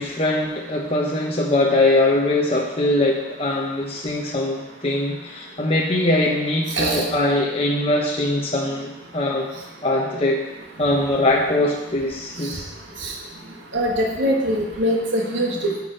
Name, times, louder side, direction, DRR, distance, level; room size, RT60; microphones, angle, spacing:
voice 1, 0.0-9.5 9.8-10.4 10.8-12.7, left 1 dB, 30° left, -2 dB, 1.0 m, -22 dB
voice 2, 6.7-7.0 12.4-12.5 13.0-13.1 13.7-15.8, equal, 70° right, -1 dB, 1.6 m, -22 dB
11.0 x 5.6 x 7.0 m, 0.98 s
head